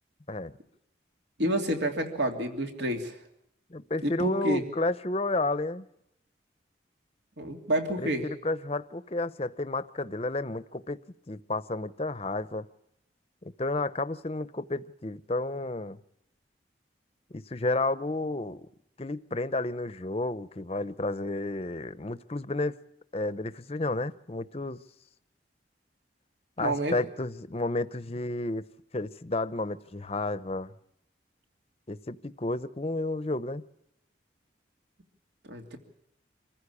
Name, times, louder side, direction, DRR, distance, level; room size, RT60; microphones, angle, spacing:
voice 1, 1.4-3.2 4.0-4.6 7.4-8.3 26.6-27.0 35.5-35.8, right 1 dB, 75° right, 4 dB, 2.9 m, -29 dB
voice 2, 3.7-5.8 8.0-11.0 11.3-12.7 13.4-16.0 17.3-18.6 19.0-22.8 23.1-24.8 26.6-28.6 28.9-30.7 31.9-33.6, left 2 dB, 35° left, 14 dB, 0.7 m, -31 dB
26.0 x 15.0 x 8.3 m, 0.80 s
head